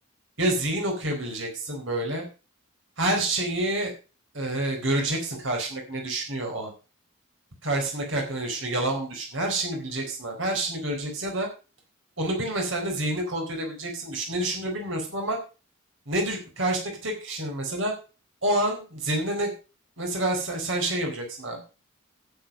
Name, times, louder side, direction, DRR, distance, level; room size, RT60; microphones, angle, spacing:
voice 1, 0.4-2.2 3.0-3.9 4.3-6.7 7.6-11.5 12.2-15.4 16.1-17.9 18.4-19.5 20.0-21.8, right 1 dB, 65° right, 1 dB, 4.2 m, -28 dB
11.5 x 7.9 x 6.4 m, 0.34 s
head